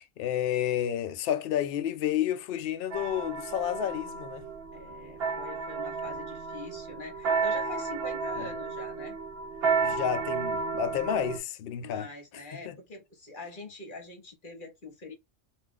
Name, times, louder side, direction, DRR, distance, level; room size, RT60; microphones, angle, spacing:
voice 1, 0.0-4.5 9.8-12.1 12.6-12.8, left 10 dB, 70° left, 0.5 m, -30 dB
sound 1, 2.9-11.4, right 5 dB, 55° right, 0.8 m, -32 dB
voice 2, 4.7-9.2 11.8-15.1, left 2 dB, 40° left, 1.0 m, -44 dB
2.5 x 2.3 x 3.6 m
omnidirectional pair, 1.5 m